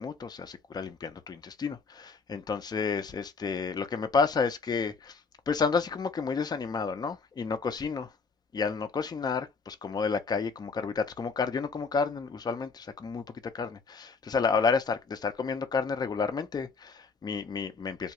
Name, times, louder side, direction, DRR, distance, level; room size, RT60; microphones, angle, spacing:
voice 1, 0.0-5.2 5.5-8.1 8.5-13.2 13.5-18.1, left 5 dB, 25° left, 0.5 m, -30 dB
2.4 x 2.3 x 2.9 m
cardioid pair, 110°, 17 cm